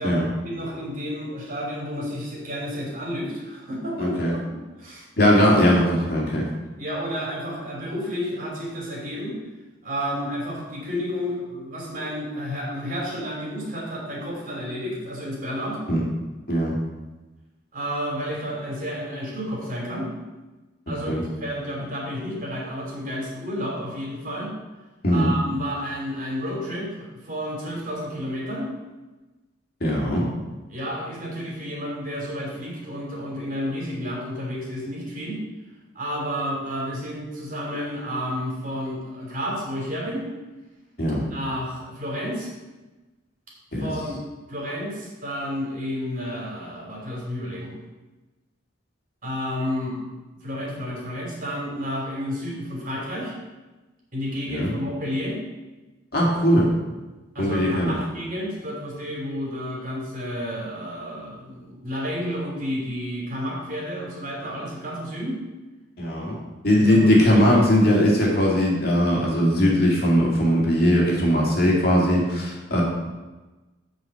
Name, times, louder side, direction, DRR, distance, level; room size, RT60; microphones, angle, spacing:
voice 1, 0.0-4.2 4.8-5.0 5.4-5.7 6.8-9.4 9.8-15.8 17.7-20.1 20.9-24.5 25.1-28.7 30.7-35.4 35.9-40.3 41.3-42.5 43.8-44.2 44.5-47.7 49.2-50.0 50.4-53.3 54.1-55.4 57.3-65.4 66.7-67.7, equal, 45° right, -3 dB, 3.1 m, -31 dB
voice 2, 4.0-4.3 5.2-6.5 15.9-16.0 16.5-16.8 21.1-21.2 25.0-25.3 29.8-30.3 41.0-41.3 43.7-43.9 54.5-54.8 56.1-56.7 57.4-57.9 66.0-66.4 66.6-72.8, equal, 50° left, -3 dB, 2.3 m, -20 dB
7.6 x 5.1 x 7.4 m, 1.2 s
head